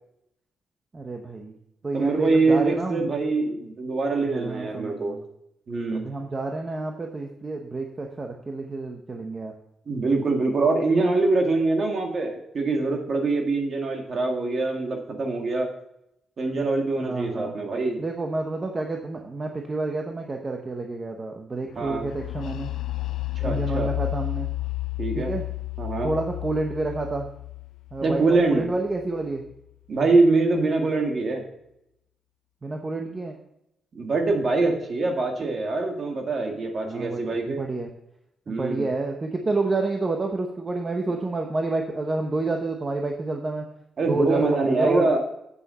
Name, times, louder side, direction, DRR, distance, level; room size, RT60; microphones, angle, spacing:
voice 1, 0.9-1.6 1.8-3.1 4.3-5.2 5.9-9.5 17.0-17.6 18.0-22.7 23.4-24.5 25.2-25.4 26.0-27.3 27.9-29.4 32.6-33.4 36.8-37.9 38.5-43.7 44.0-45.1, right 2 dB, 25° right, 3 dB, 0.8 m, -29 dB
voice 2, 1.9-5.2 5.7-6.1 9.9-15.7 16.4-18.0 21.8-22.1 23.4-23.9 25.0-25.3 25.8-26.1 28.0-28.6 29.9-31.4 33.9-37.6 38.5-38.9 44.0-45.2, right 3 dB, 40° right, 2 dB, 1.8 m, -24 dB
sound 1, 21.8-29.5, left 19 dB, 85° left, 0.4 m, -32 dB
8.3 x 6.9 x 5.6 m, 0.81 s
wide cardioid pair, 160°, 0 cm